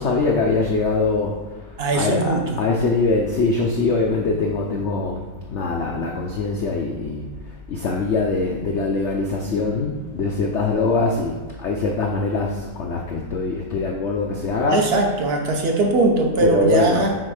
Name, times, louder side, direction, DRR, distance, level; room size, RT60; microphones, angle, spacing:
voice 1, 0.0-1.4 1.9-7.3 7.7-15.0 16.4-17.2, left 3 dB, 75° left, 1 dB, 0.6 m, -23 dB
voice 2, 1.8-2.6 14.7-17.1, right 2 dB, 50° right, 2 dB, 0.7 m, -20 dB
6.0 x 4.3 x 4.9 m, 1.2 s
omnidirectional pair, 2.0 m